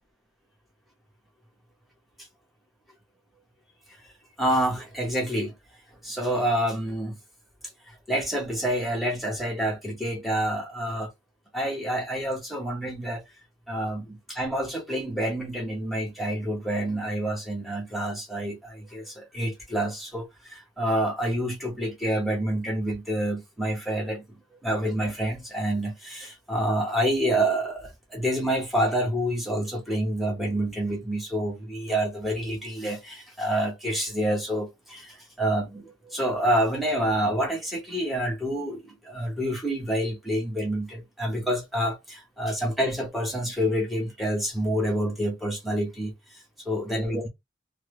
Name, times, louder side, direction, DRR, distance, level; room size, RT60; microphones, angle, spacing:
voice 1, 4.4-5.5 6.0-7.2 7.9-11.1 11.5-13.2 13.7-47.3, right 1 dB, ahead, 0.9 m, -28 dB
3.0 x 2.0 x 3.1 m
head